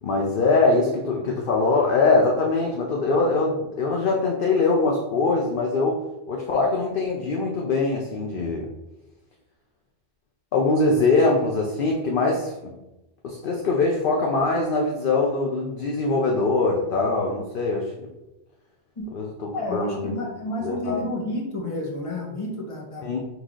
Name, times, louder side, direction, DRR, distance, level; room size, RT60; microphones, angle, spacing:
voice 1, 0.0-6.0 6.3-8.7 10.5-12.7 13.2-18.1 19.1-20.2 20.6-21.0 23.0-23.2, left 3 dB, 55° left, -1 dB, 0.8 m, -22 dB
voice 2, 19.5-23.1, left 1 dB, 30° left, -2 dB, 1.1 m, -31 dB
4.9 x 2.7 x 3.7 m, 0.98 s
omnidirectional pair, 1.2 m